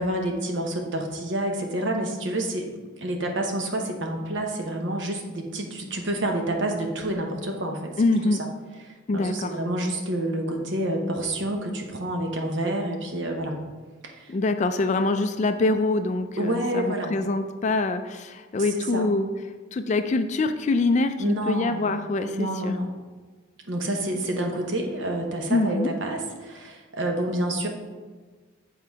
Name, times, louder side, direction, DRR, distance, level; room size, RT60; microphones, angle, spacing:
voice 1, 0.0-2.7 3.0-7.9 8.3-8.4 8.8-13.6 14.0-14.3 14.8-14.9 16.4-17.2 18.6-19.1 21.2-22.0 22.2-22.9 23.7-27.7, right 1 dB, 60° right, 2 dB, 0.9 m, -28 dB
voice 2, 8.0-8.4 9.1-9.5 14.3-19.3 19.7-22.7 25.5-25.9, left 2 dB, 35° left, 9 dB, 0.3 m, -24 dB
7.5 x 3.9 x 4.6 m, 1.4 s
head